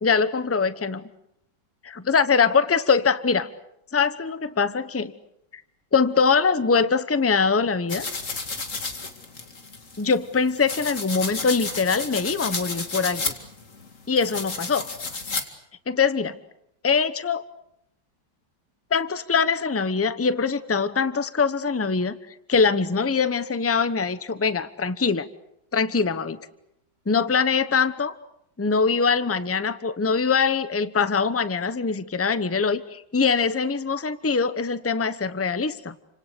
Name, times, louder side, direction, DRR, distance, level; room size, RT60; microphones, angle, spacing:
voice 1, 0.0-1.0 2.1-3.5 3.9-5.1 5.9-8.1 10.0-13.3 14.1-14.9 15.9-16.4 16.8-17.4 18.9-22.2 22.5-25.3 25.7-26.4 27.1-28.1 28.6-35.9, left 5 dB, 15° left, 13 dB, 0.4 m, -23 dB
sound 1, 7.9-15.4, left 3 dB, 40° left, 2.6 m, -32 dB
29.5 x 26.0 x 6.7 m, 0.80 s
omnidirectional pair, 2.0 m